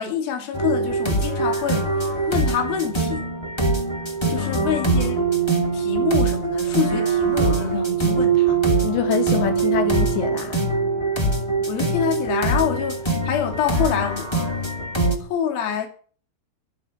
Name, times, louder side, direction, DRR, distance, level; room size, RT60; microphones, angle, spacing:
voice 1, 0.0-3.3 4.3-5.2 5.7-8.6 11.7-14.3 15.2-15.9, left 8 dB, 60° left, 4.0 m, -26 dB
sound 1, 0.5-15.2, right 4 dB, 15° left, 1.1 m, -22 dB
voice 2, 4.4-5.1 8.8-10.6, left 9 dB, 85° left, 4.2 m, -26 dB
14.0 x 7.8 x 8.8 m
omnidirectional pair, 4.9 m